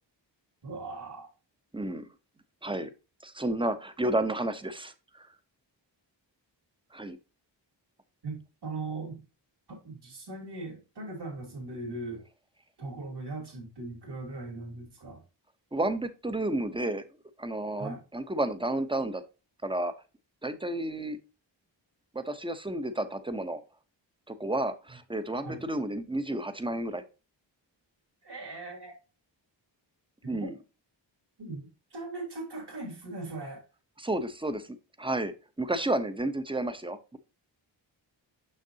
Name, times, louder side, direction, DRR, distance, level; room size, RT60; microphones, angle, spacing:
voice 1, 0.6-1.3 8.2-9.2 9.7-12.2 12.8-15.2 17.8-18.0 25.4-25.6 28.2-29.0 30.3-30.6 31.4-33.6, right 3 dB, 60° right, 0 dB, 3.2 m, -39 dB
voice 2, 1.7-2.1 2.6-2.9 3.2-5.3 6.9-7.2 15.7-17.0 17.4-19.2 19.6-19.9 20.4-21.2 22.1-23.6 24.3-27.0 30.3-30.5 34.0-37.2, right 1 dB, 10° right, 11 dB, 0.8 m, -31 dB
6.5 x 6.5 x 2.8 m, 0.30 s
wide cardioid pair, 95°, 45 cm